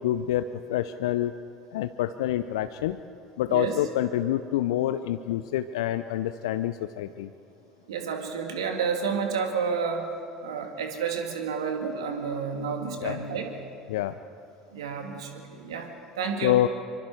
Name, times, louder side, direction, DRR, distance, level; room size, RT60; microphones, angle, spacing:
voice 1, 0.0-1.3 1.7-3.0 3.4-7.3 13.0-13.2 13.9-14.1 16.4-16.7, left 13 dB, 70° left, 11 dB, 0.5 m, -27 dB
voice 2, 7.9-10.1 10.4-13.5 14.7-15.9 16.2-16.6, right 6 dB, 75° right, 3 dB, 2.5 m, -30 dB
25.5 x 24.5 x 4.8 m, 2.6 s
figure-of-eight pair, 65°, 3 cm